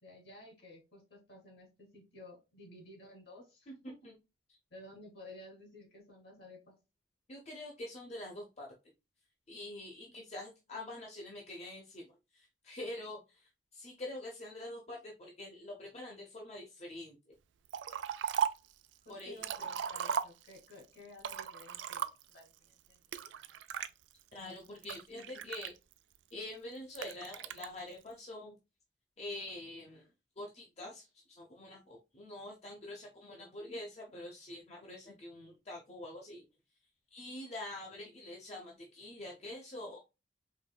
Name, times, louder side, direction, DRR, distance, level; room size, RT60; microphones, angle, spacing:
voice 1, 0.0-3.9 4.7-6.7 19.0-23.6, left 1 dB, 60° left, 0 dB, 2.0 m, -54 dB
voice 2, 7.3-8.7 9.5-12.0 12.3-17.2 19.1-19.4 24.3-25.7 26.3-28.5 29.2-30.1 30.4-36.4 37.1-40.0, left 1 dB, 35° left, -1 dB, 0.7 m, -45 dB
Liquid, 17.7-18.7 19.2-20.7 21.2-22.4 23.1-23.9 24.5-26.2 26.9-27.7, right 7 dB, 90° right, 0.4 m, -36 dB
4.6 x 3.1 x 2.2 m, 0.27 s
head